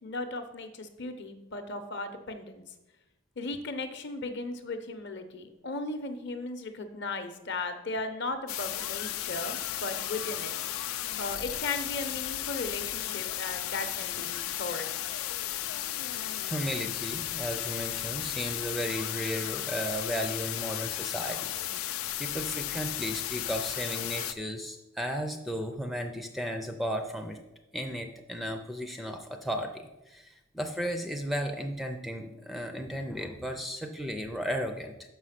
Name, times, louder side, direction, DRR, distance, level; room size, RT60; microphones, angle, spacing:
voice 1, 0.0-2.6 3.4-10.5 11.2-14.9, left 2 dB, 55° left, 8 dB, 0.7 m, -36 dB
sound 1, 8.5-24.3, left 13 dB, 75° left, 0.4 m, -34 dB
voice 2, 16.0-27.4 27.7-34.9, equal, ahead, 4 dB, 0.4 m, -35 dB
6.2 x 5.7 x 5.8 m, 0.97 s
head